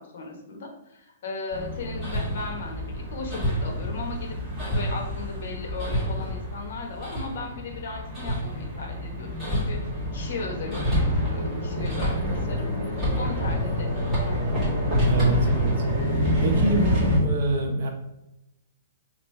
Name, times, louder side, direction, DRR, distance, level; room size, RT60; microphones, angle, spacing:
voice 1, 0.0-4.4 4.7-9.8 10.1-12.2 12.5-12.7 13.2-14.5, left 3 dB, 55° left, 2 dB, 1.0 m, -37 dB
Hammer, 1.5-17.2, equal, ahead, 1.3 m, -27 dB
voice 2, 15.0-15.7 16.4-17.9, right 2 dB, 50° right, 1 dB, 0.8 m, -25 dB
3.1 x 2.6 x 4.5 m, 0.90 s
hypercardioid pair, 175°, 0 cm